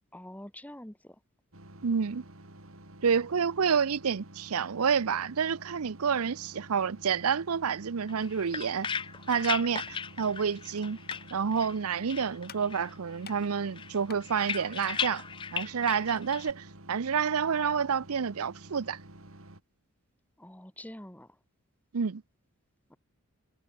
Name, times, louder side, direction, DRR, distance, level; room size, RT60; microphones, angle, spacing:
voice 1, 0.1-1.2 20.4-21.3 22.9-23.0, left 1 dB, 5° left, 1.6 m, -46 dB
sound 1, 1.5-19.6, right 1 dB, 70° right, 4.0 m, -51 dB
voice 2, 1.8-2.2 3.0-8.9 9.3-11.0 11.3-15.2 15.5-19.0 21.9-22.2, right 6 dB, 90° right, 0.6 m, -29 dB
sound 2, 8.1-11.8 12.1-13.0 13.3-16.5, left 7 dB, 20° left, 0.4 m, -37 dB
sound 3, 10.6-15.9, left 7 dB, 45° left, 4.5 m, -54 dB
head